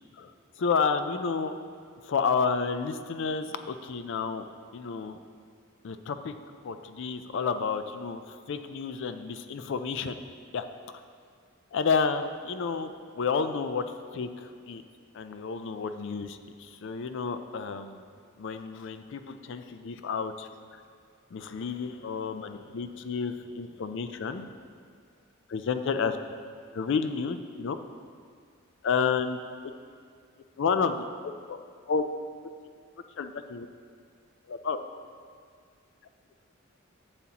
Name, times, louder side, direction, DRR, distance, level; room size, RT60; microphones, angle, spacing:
voice 1, 0.6-1.6 2.1-4.5 4.7-5.2 5.8-6.3 6.6-10.2 10.5-10.6 11.7-13.8 14.1-14.8 15.1-18.0 18.4-20.8 21.3-24.6 25.5-26.2 26.7-27.8 28.8-29.4 30.6-31.6 31.9-32.0 33.2-33.7 34.5-34.8, left 5 dB, 60° left, 9 dB, 0.4 m, -30 dB
12.0 x 7.3 x 2.9 m, 2.1 s
head